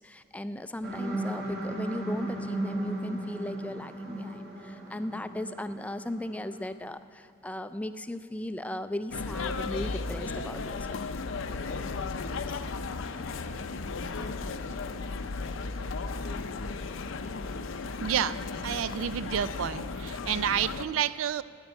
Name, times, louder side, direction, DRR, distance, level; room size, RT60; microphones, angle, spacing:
voice 1, 0.0-11.0, left 1 dB, 5° left, 11 dB, 0.3 m, -37 dB
sound 1, 0.8-6.8, right 1 dB, 55° right, 2.6 m, -36 dB
sound 2, 9.1-20.9, left 4 dB, 70° left, 0.6 m, -35 dB
voice 2, 18.0-21.4, right 9 dB, 85° right, 17 dB, 0.4 m, -30 dB
9.6 x 8.9 x 9.9 m, 2.3 s
head